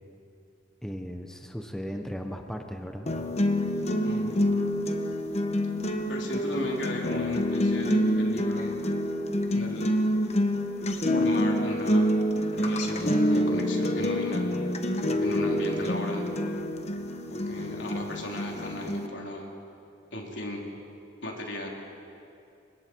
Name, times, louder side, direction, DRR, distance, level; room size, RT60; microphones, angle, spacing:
voice 1, 0.8-3.1, equal, 5° left, 4 dB, 1.1 m, -36 dB
sound 1, 3.1-19.1, equal, 35° left, 1.3 m, -27 dB
voice 2, 4.0-4.4 6.1-8.8 9.5-10.0 11.1-12.1 12.5-14.5 15.2-16.3 17.3-19.5 20.1-20.7 21.2-21.7, left 1 dB, 75° left, -1 dB, 3.7 m, -36 dB
29.0 x 24.5 x 4.7 m, 2.6 s
head